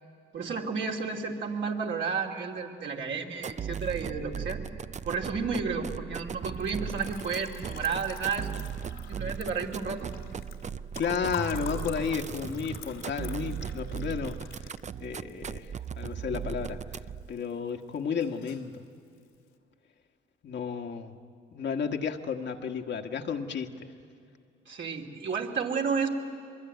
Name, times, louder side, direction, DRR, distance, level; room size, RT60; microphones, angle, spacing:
voice 1, 0.3-4.6 5.0-8.6 9.1-10.1 24.7-26.1, right 5 dB, 60° right, 0 dB, 2.9 m, -32 dB
sound 1, 3.4-17.3, right 7 dB, 35° right, 0.6 m, -37 dB
Liquid, 6.5-16.7 17.0-17.7 18.0-18.7, left 7 dB, 70° left, 2.3 m, -47 dB
voice 2, 11.0-14.4 15.0-16.8 17.3-18.8 20.4-21.1 21.5-23.9, left 6 dB, 55° left, 4 dB, 1.6 m, -32 dB
23.0 x 22.5 x 9.4 m, 2.4 s
supercardioid pair, 55°, 21 cm